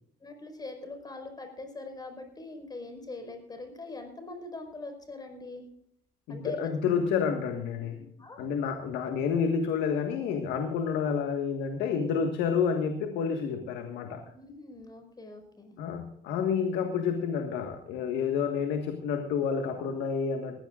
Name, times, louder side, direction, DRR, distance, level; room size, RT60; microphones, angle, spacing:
voice 1, 0.2-5.6 6.3-6.6 8.2-8.4 14.3-15.7, left 2 dB, 25° left, 6 dB, 5.1 m, -42 dB
voice 2, 6.3-8.1 8.4-14.2 15.8-20.6, left 6 dB, 85° left, 5 dB, 1.7 m, -29 dB
20.5 x 16.0 x 2.5 m, 0.73 s
cardioid pair, 110°, 17 cm